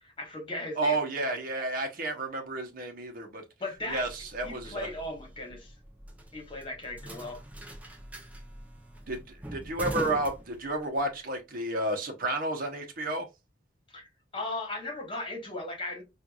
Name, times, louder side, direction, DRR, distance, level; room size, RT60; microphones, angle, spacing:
voice 1, 0.0-1.0 3.6-4.0 4.4-5.7 6.3-7.4 13.9-14.1 14.3-16.0, left 2 dB, 30° left, 1.4 m, -37 dB
voice 2, 0.8-3.4 3.9-4.9 9.1-13.3, right 2 dB, 50° right, 0.9 m, -31 dB
sound 1, 3.8-11.1, right 1 dB, 10° right, 0.7 m, -43 dB
4.5 x 2.5 x 2.3 m
head